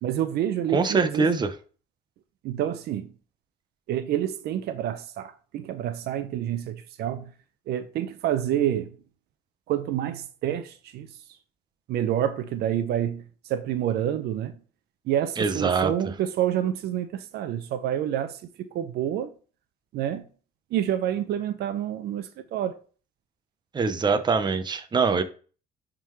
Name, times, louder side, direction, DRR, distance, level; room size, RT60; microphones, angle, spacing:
voice 1, 0.0-1.4 2.4-3.1 3.9-7.3 7.7-9.0 9.7-11.1 11.9-13.2 13.5-14.6 15.1-19.3 19.9-20.2 20.7-22.8, right 11 dB, 70° right, 0.7 m, -28 dB
voice 2, 0.7-1.5 15.4-16.1 23.7-25.2, right 4 dB, 25° right, 0.8 m, -24 dB
10.0 x 3.8 x 3.2 m
cardioid pair, 110°, 17 cm